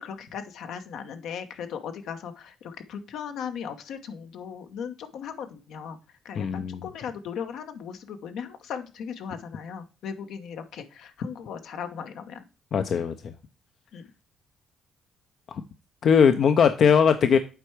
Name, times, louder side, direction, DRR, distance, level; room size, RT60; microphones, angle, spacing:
voice 1, 0.0-6.0 6.2-12.4 13.9-14.1, left 7 dB, 80° left, 7 dB, 1.0 m, -37 dB
voice 2, 6.4-6.9 12.7-13.3 16.0-17.4, left 7 dB, 60° left, 9 dB, 0.6 m, -20 dB
8.0 x 4.5 x 4.6 m, 0.33 s
cardioid pair, 90°, 0 cm